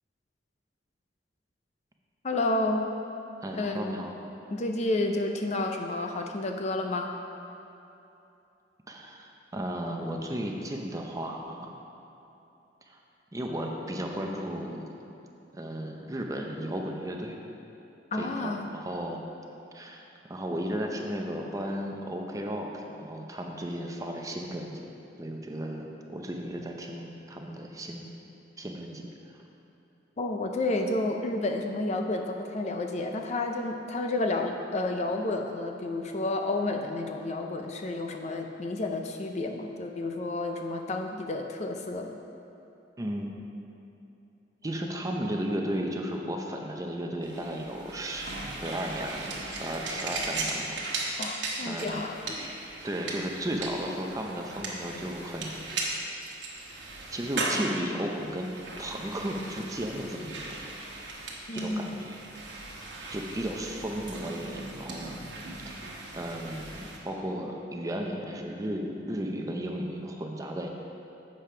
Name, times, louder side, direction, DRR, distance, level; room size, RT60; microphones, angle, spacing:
voice 1, 2.2-2.9 3.5-4.0 4.5-7.1 18.1-18.6 30.2-42.2 51.2-52.5 61.5-62.1, left 2 dB, 40° left, 3 dB, 0.4 m, -30 dB
voice 2, 3.4-4.1 8.9-11.7 12.9-13.0 13.3-15.0 15.5-17.4 18.1-19.2 19.7-24.9 25.2-28.1 28.6-29.1 43.0-43.3 44.6-48.3 48.6-50.8 51.6-52.0 52.8-55.6 56.7-56.9 57.1-58.5 58.8-60.6 61.5-62.2 63.1-65.1 66.1-70.7, equal, 20° right, 1 dB, 0.6 m, -34 dB
sound 1, 47.2-67.0, right 2 dB, 70° right, 1.2 m, -37 dB
7.5 x 5.1 x 5.6 m, 2.9 s
head